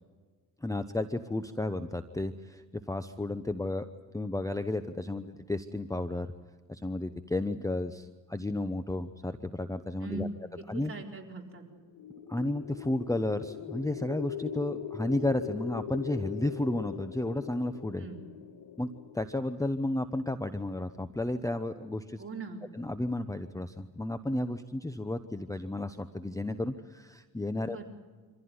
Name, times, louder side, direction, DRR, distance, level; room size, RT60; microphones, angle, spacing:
voice 1, 0.6-2.6 2.9-3.9 4.1-6.3 6.7-10.3 10.7-10.9 12.3-18.0 18.8-18.9 19.1-22.2 22.7-27.8, left 2 dB, 10° left, 10 dB, 0.9 m, -32 dB
voice 2, 10.0-11.6 18.0-18.3 22.2-22.6 27.6-27.8, right 3 dB, 35° right, 0 dB, 4.3 m, -40 dB
sound 1, 11.8-20.0, left 9 dB, 80° left, 1.2 m, -41 dB
25.5 x 15.0 x 9.7 m, 1.5 s
cardioid pair, 85°, 38 cm